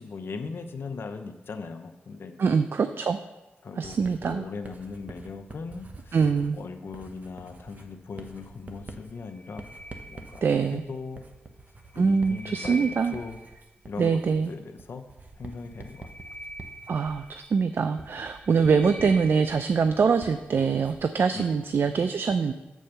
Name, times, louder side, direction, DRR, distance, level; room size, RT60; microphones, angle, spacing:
voice 1, 0.0-2.6 3.6-6.2 6.6-9.6 10.1-11.2 11.9-13.4 13.8-14.2 14.5-15.0 15.4-16.1 21.3-21.6, left 4 dB, 65° left, 7 dB, 0.7 m, -39 dB
voice 2, 2.4-3.2 3.8-4.5 6.1-6.6 10.4-10.8 12.0-13.2 14.0-14.5 16.9-22.5, right 5 dB, 60° right, 10 dB, 0.4 m, -24 dB
Writing, 3.8-21.2, right 3 dB, 40° right, 1.0 m, -47 dB
sound 1, 9.2-10.9 11.8-13.7 15.6-17.7 18.2-19.8, right 1 dB, 25° left, 1.6 m, -44 dB
7.3 x 4.3 x 6.7 m, 1.0 s
cardioid pair, 65°, 4 cm